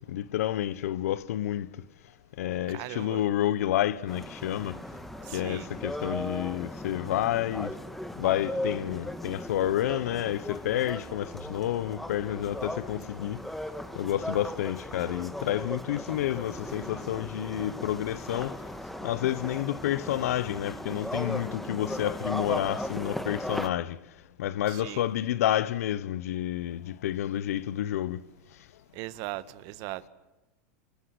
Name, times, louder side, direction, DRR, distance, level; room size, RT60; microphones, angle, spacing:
voice 1, 0.1-1.7 2.4-4.8 5.3-7.7 8.2-13.4 13.9-18.6 19.0-24.0 24.4-28.2, left 12 dB, 80° left, 1.2 m, -29 dB
voice 2, 2.7-3.2 5.2-5.7 24.7-25.0 28.9-30.1, right 18 dB, 50° right, 1.6 m, -39 dB
sound 1, 4.1-23.7, left 1 dB, ahead, 1.8 m, -37 dB
28.0 x 24.0 x 8.0 m
supercardioid pair, 130°, 8 cm